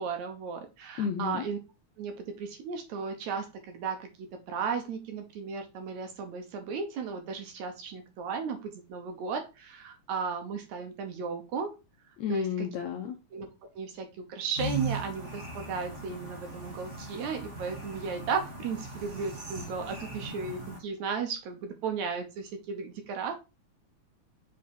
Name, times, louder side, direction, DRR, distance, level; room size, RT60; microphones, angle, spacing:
voice 1, 0.0-1.6 2.0-11.7 12.3-12.7 13.3-13.5 13.8-23.3, right 5 dB, 70° right, 5 dB, 2.1 m, -35 dB
voice 2, 1.0-1.4 12.2-13.1, left 8 dB, 80° left, 4 dB, 1.7 m, -32 dB
sound 1, 14.6-20.8, right 2 dB, 50° right, 0.8 m, -39 dB
7.5 x 3.5 x 4.2 m, 0.27 s
omnidirectional pair, 3.8 m